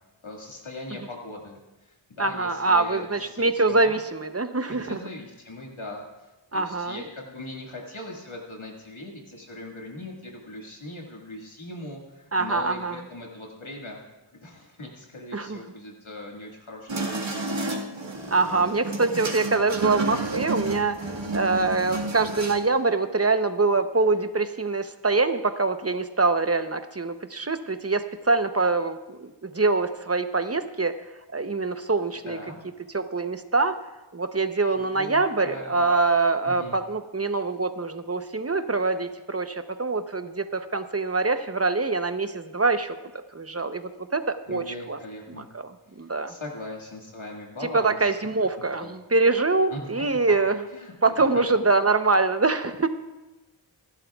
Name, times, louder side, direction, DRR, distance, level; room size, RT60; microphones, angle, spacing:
voice 1, 0.2-4.0 4.7-14.0 14.3-17.7 17.9-18.7 32.2-32.6 34.8-35.9 36.4-36.8 44.5-45.5 46.3-48.3 48.6-48.9 49.7-50.0 50.7-51.4, left 1 dB, 75° left, -1 dB, 1.9 m, -40 dB
voice 2, 2.2-5.0 6.5-7.0 12.3-13.0 15.3-15.6 18.3-21.0 21.3-31.0 31.3-32.4 32.9-33.8 34.1-43.0 43.3-45.0 45.3-45.7 46.0-46.3 47.7-50.6 51.0-52.9, right 3 dB, 30° right, 9 dB, 0.8 m, -24 dB
sound 1, 16.9-22.7, right 2 dB, 65° right, 1.9 m, -31 dB
26.5 x 12.0 x 2.4 m, 1.1 s
wide cardioid pair, 50°, 48 cm